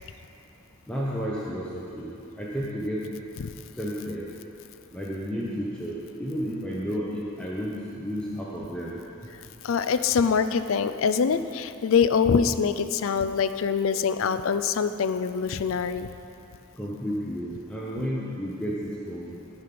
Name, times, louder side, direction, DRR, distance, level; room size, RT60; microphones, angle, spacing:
voice 1, 0.9-3.0 3.8-4.3 4.9-9.0 16.8-19.3, equal, 5° left, -6 dB, 0.8 m, -32 dB
voice 2, 9.6-16.1, left 6 dB, 65° left, 11 dB, 0.4 m, -24 dB
13.5 x 5.4 x 6.0 m, 2.8 s
head